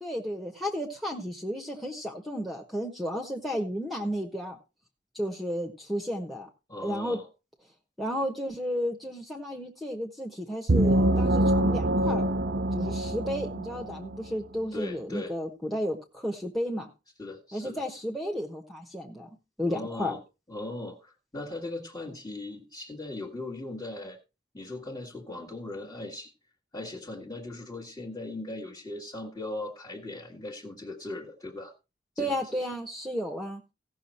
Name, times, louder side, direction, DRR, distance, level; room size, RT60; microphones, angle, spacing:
voice 1, 0.0-4.6 5.1-6.5 6.8-7.2 8.0-12.3 12.7-16.9 17.5-19.3 19.6-20.1 32.2-33.6, equal, ahead, 2 dB, 1.3 m, -33 dB
voice 2, 6.7-7.3 14.7-15.4 17.2-17.8 19.7-20.2 20.5-24.2 24.5-26.3 26.7-31.7 32.1-32.4, left 2 dB, 20° left, -3 dB, 1.7 m, -39 dB
sound 1, 10.7-14.2, right 1 dB, 65° right, 0.7 m, -25 dB
16.5 x 6.3 x 4.4 m, 0.30 s
head